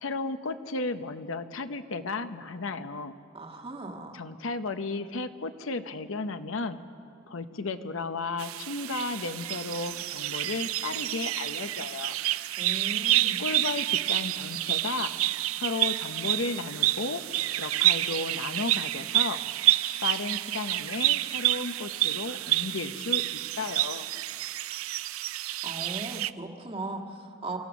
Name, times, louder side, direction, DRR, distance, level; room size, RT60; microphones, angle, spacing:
voice 1, 0.0-3.1 4.1-6.8 7.3-12.1 13.4-15.1 15.6-17.2 17.6-19.4 20.0-24.1, left 3 dB, 70° left, 10 dB, 0.8 m, -34 dB
voice 2, 3.3-4.2 12.6-13.4 25.6-27.6, right 2 dB, 25° right, 3 dB, 1.6 m, -38 dB
sound 1, 8.4-26.3, right 15 dB, 85° right, 0.4 m, -29 dB
28.5 x 15.5 x 6.2 m, 2.4 s
head